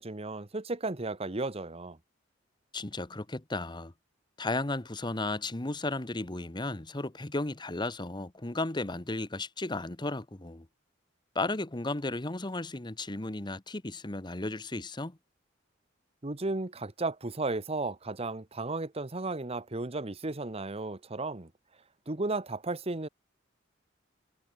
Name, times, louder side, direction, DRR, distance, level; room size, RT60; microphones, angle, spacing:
voice 1, 0.0-2.0 16.2-21.5 22.1-23.1, right 2 dB, 30° right, 1.1 m, -34 dB
voice 2, 2.7-3.9 4.4-10.7 11.3-15.2, left 2 dB, 25° left, 1.1 m, -34 dB
head